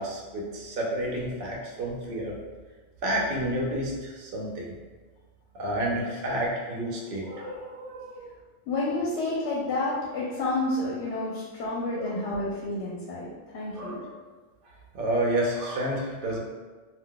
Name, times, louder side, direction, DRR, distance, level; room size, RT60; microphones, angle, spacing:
voice 1, 0.0-2.3 3.0-4.7 5.5-8.2 12.0-12.1 13.7-14.1 14.9-16.4, right 1 dB, 55° right, -2 dB, 0.7 m, -30 dB
voice 2, 8.7-13.3 13.5-14.0, left 2 dB, 75° left, -5 dB, 0.8 m, -29 dB
2.3 x 2.1 x 3.8 m, 1.3 s
omnidirectional pair, 1.2 m